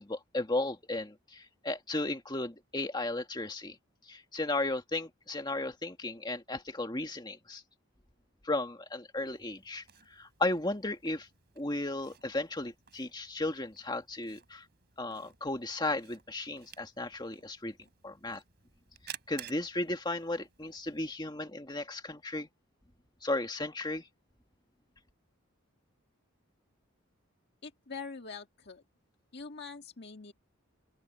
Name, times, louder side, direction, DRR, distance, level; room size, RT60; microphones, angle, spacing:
voice 1, 0.0-3.8 4.1-7.6 8.4-11.3 11.6-14.6 15.0-17.7 18.0-18.4 19.0-22.5 23.2-24.1, left 2 dB, 20° left, 1.8 m, -35 dB
Camera, 9.1-21.1, right 10 dB, 50° right, 3.9 m, -54 dB
voice 2, 27.6-28.8 29.3-30.3, left 4 dB, 50° left, 1.9 m, -44 dB
open air
head